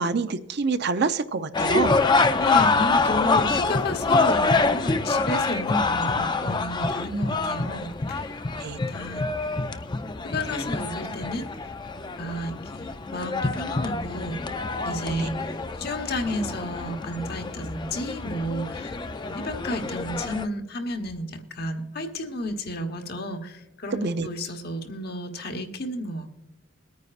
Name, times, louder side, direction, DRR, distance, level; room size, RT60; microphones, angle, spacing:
voice 1, 0.0-2.0 8.6-8.8 15.1-15.3 24.0-24.3, right 4 dB, 60° right, 10 dB, 0.6 m, -26 dB
sound 1, 1.5-20.5, left 3 dB, 25° left, 0.4 m, -26 dB
voice 2, 2.4-8.4 8.9-10.0 10.2-14.4 14.8-26.4, left 1 dB, 55° left, 6 dB, 1.2 m, -32 dB
22.0 x 9.4 x 2.5 m, 1.0 s
head